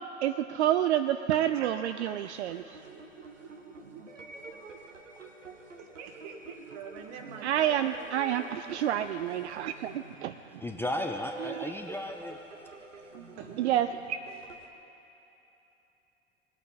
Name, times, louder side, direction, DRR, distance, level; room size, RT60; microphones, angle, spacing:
voice 1, 0.2-2.6 7.4-9.9 10.2-10.3 13.6-13.9, right 11 dB, 65° right, 10 dB, 0.5 m, -28 dB
voice 2, 1.4-2.1 2.7-3.0 3.4-4.0 4.7-4.8 5.8-8.5 9.0-9.1 13.4-13.8, right 6 dB, 50° right, 4 dB, 1.5 m, -45 dB
sound 1, 1.9-14.7, right 3 dB, 80° right, 1.0 m, -48 dB
voice 3, 10.6-12.4, left 1 dB, 5° left, 4 dB, 0.5 m, -35 dB
20.5 x 8.7 x 4.1 m, 3.0 s
figure-of-eight pair, 75°, 37 cm